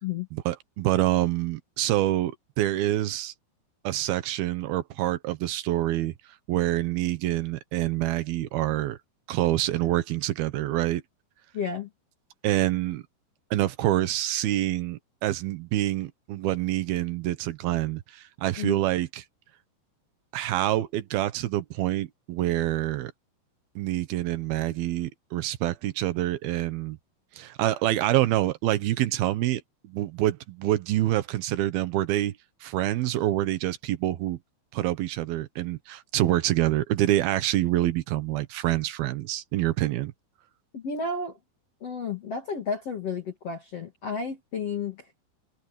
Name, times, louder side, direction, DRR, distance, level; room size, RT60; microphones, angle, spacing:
voice 1, 0.3-3.3 3.8-6.1 6.5-9.0 9.3-11.0 12.4-13.0 13.5-19.2 20.3-23.1 23.8-27.0 27.4-32.3 32.6-34.4 34.7-40.1, right 14 dB, 70° right, 2.7 m, -26 dB
voice 2, 11.5-11.9 18.6-18.8 40.7-41.4 41.8-45.1, left 5 dB, 45° left, 2.6 m, -32 dB
omnidirectional pair, 5.2 m